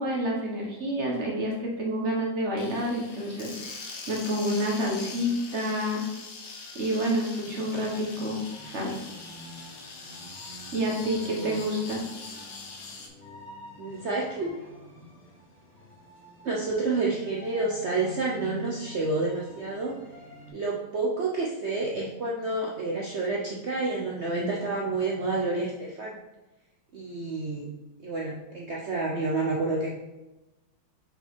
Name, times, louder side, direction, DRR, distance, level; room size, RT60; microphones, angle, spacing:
voice 1, 0.0-6.0 6.7-9.0 10.7-12.0, equal, 45° right, -2 dB, 1.2 m, -29 dB
sound 1, 2.6-13.1, left 4 dB, 70° left, 1.6 m, -42 dB
sound 2, 7.5-20.5, left 2 dB, 5° left, 1.4 m, -47 dB
voice 2, 11.2-11.6 13.8-14.5 16.4-20.0 20.5-26.2 26.9-27.7 28.0-29.9, right 3 dB, 65° right, -3 dB, 0.6 m, -29 dB
5.4 x 4.9 x 3.6 m, 1.0 s
omnidirectional pair, 2.1 m